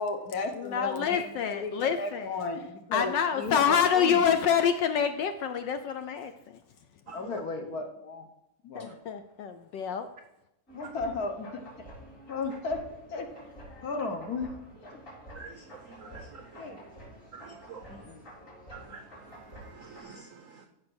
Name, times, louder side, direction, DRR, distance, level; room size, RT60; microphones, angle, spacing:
voice 1, 0.0-4.4 7.1-8.3 8.6-9.0 10.7-11.6 12.3-12.8 13.1-13.3 13.8-14.5 14.9-15.0 16.6-16.8 17.9-18.2, left 3 dB, 55° left, 5 dB, 1.3 m, -34 dB
voice 2, 0.6-2.2 2.9-6.6 8.8-10.1, left 7 dB, 70° left, 9 dB, 1.1 m, -27 dB
sound 1, 10.7-20.0, equal, 35° left, 4.3 m, -49 dB
voice 3, 15.3-16.7 17.3-18.0 18.7-20.7, right 5 dB, 70° right, 6 dB, 0.7 m, -48 dB
14.0 x 4.9 x 6.1 m, 0.85 s
omnidirectional pair, 2.4 m